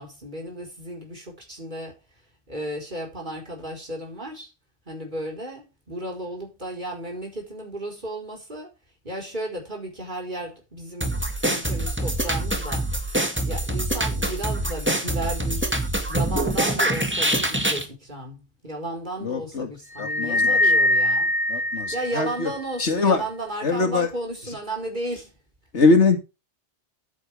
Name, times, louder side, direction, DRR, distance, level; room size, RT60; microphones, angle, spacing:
voice 1, 0.0-2.0 2.5-4.5 4.9-8.7 9.0-13.1 13.4-21.3 21.9-25.3, right 1 dB, 45° right, 4.9 m, -34 dB
sound 1, 11.0-17.9, right 1 dB, 10° right, 2.0 m, -25 dB
voice 2, 19.2-19.7 20.0-20.6 21.5-22.5 22.8-23.2 23.6-24.1 25.7-26.2, left 4 dB, 90° left, 2.4 m, -21 dB
sound 2, 20.0-22.6, left 1 dB, 70° left, 1.8 m, -22 dB
10.5 x 9.5 x 3.5 m
omnidirectional pair, 1.1 m